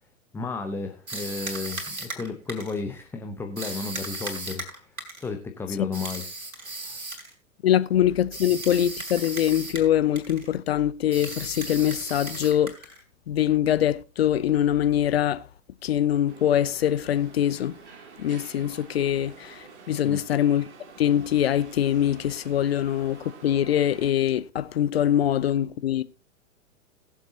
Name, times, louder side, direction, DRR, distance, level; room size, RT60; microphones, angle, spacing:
voice 1, 0.3-6.3 6.6-7.0 20.0-20.2, left 4 dB, 5° left, 0.7 m, -33 dB
sound 1, 1.1-2.8 3.6-5.3 5.9-7.3 8.3-9.9 10.2-10.5 11.1-13.0, right 2 dB, 75° right, 3.4 m, -36 dB
voice 2, 7.6-12.7 13.3-15.5 15.8-17.8 18.2-20.7 21.0-26.0, left 11 dB, 45° left, 0.6 m, -23 dB
sound 2, 16.3-24.1, right 5 dB, 55° right, 2.2 m, -48 dB
21.0 x 7.3 x 2.8 m
figure-of-eight pair, 105°, 42 cm